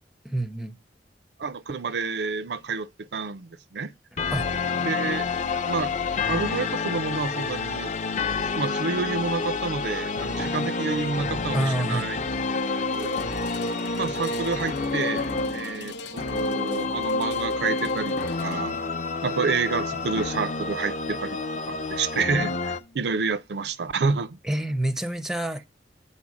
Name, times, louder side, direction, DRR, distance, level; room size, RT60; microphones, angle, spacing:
voice 1, 0.2-0.8 4.3-4.5 11.5-12.1 24.4-25.6, right 1 dB, ahead, 0.5 m, -27 dB
voice 2, 1.4-3.9 4.8-5.3 5.7-7.9 8.5-12.2 12.7-13.2 13.9-18.8 19.2-21.4 21.7-24.4, right 4 dB, 65° right, 0.5 m, -29 dB
sound 1, 4.2-22.8, left 4 dB, 40° left, 0.6 m, -28 dB
sound 2, 12.9-23.3 23.9-24.0, left 3 dB, 75° left, 0.8 m, -43 dB
7.2 x 4.4 x 6.3 m
head